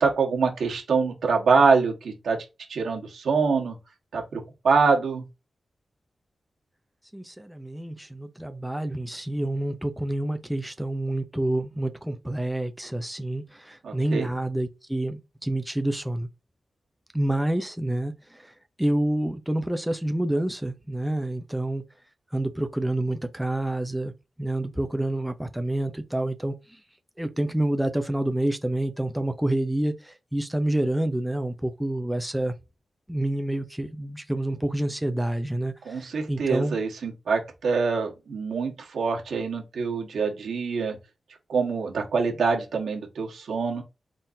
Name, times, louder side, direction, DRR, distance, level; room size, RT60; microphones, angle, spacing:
voice 1, 0.0-3.7 4.1-5.2 13.8-14.3 35.8-41.0 41.5-43.8, right 5 dB, 90° right, 1.4 m, -25 dB
voice 2, 7.1-16.3 17.1-18.1 18.8-21.8 22.3-24.1 24.4-26.5 27.2-32.5 33.1-36.8, right 1 dB, 5° right, 0.6 m, -28 dB
4.2 x 3.7 x 2.7 m
cardioid pair, 80°, 0 cm